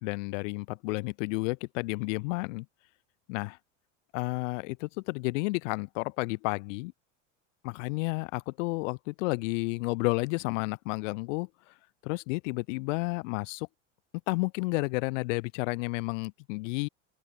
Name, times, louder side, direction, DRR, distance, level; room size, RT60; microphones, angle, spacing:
voice 1, 0.0-2.7 3.3-3.6 4.1-6.9 7.6-11.5 12.0-13.7 14.3-16.9, left 26 dB, 75° left, 0.6 m, -31 dB
open air
supercardioid pair, 120°, 38 cm